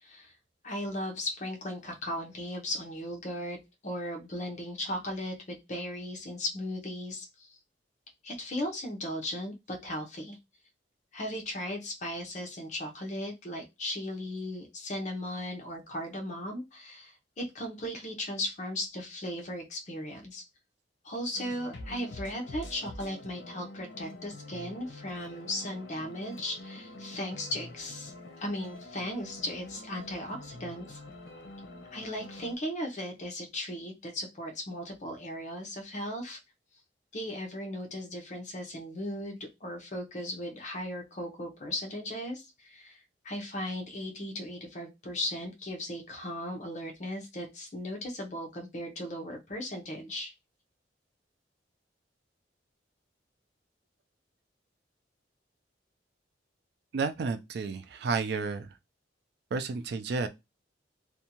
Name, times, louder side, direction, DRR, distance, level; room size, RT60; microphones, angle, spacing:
voice 1, 0.0-0.3 0.6-3.6 3.8-7.6 8.2-10.4 11.1-20.4 21.0-28.1 28.4-31.0 31.9-36.4 37.1-43.0 43.2-50.3, left 1 dB, 40° left, 0.7 m, -37 dB
sound 1, 21.3-32.6, left 1 dB, 80° left, 0.7 m, -46 dB
voice 2, 56.9-58.7 59.5-60.3, right 4 dB, 65° right, 0.4 m, -31 dB
2.6 x 2.2 x 2.8 m
head